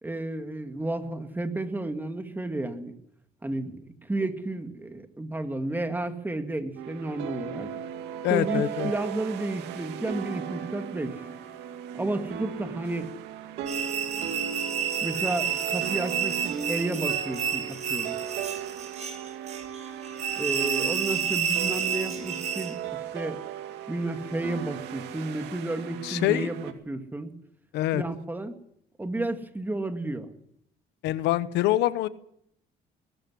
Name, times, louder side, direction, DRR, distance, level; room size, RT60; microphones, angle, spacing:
voice 1, 0.0-3.0 3.4-7.7 8.3-11.2 11.9-13.1 15.0-18.2 20.4-23.4 23.9-27.3 27.9-28.6 29.0-30.3, right 2 dB, 10° right, 8 dB, 2.2 m, -32 dB
sound 1, 6.8-26.7, right 8 dB, 85° right, 2.3 m, -37 dB
voice 2, 8.2-8.9 26.0-26.5 27.7-28.0 31.0-32.1, left 14 dB, 85° left, 14 dB, 1.1 m, -25 dB
sound 2, 13.7-22.8, right 8 dB, 40° right, 4.3 m, -30 dB
21.5 x 12.5 x 9.8 m, 0.71 s
cardioid pair, 110°, 17 cm